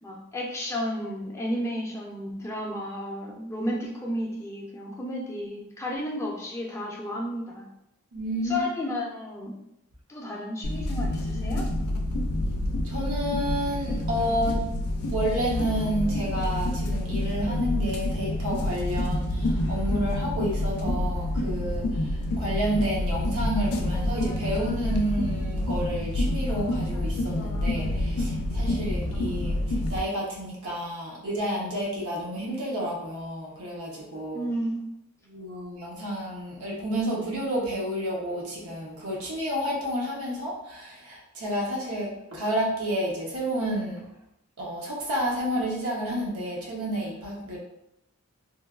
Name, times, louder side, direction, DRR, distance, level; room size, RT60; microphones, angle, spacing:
voice 1, 0.0-7.6 8.4-9.5 10.1-11.6 34.3-34.8, left 1 dB, 10° left, -2 dB, 0.4 m, -32 dB
voice 2, 8.1-8.6 12.8-14.7 15.1-34.5 35.3-44.1 44.6-47.6, equal, 80° right, -4 dB, 0.7 m, -30 dB
sound 1, 10.6-30.0, left 1 dB, 90° left, 0.4 m, -28 dB
3.1 x 2.2 x 2.3 m, 0.84 s
head